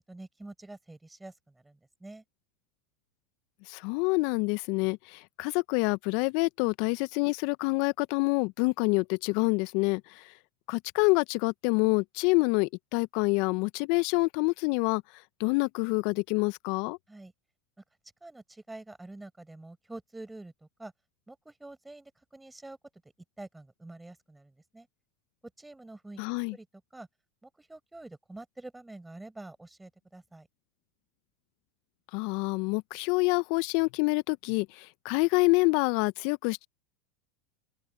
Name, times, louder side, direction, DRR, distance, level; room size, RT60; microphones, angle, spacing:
voice 1, 0.0-2.2 17.1-17.3 18.2-20.9 21.3-22.8 23.4-24.9 25.6-26.2 26.5-26.7 26.9-27.1 27.4-30.5, right 2 dB, 10° right, 6.7 m, -47 dB
voice 2, 3.7-10.2 10.7-15.0 15.4-17.0 26.2-26.5 32.1-36.7, left 29 dB, 55° left, 1.2 m, -27 dB
open air
hypercardioid pair, 85°, 0 cm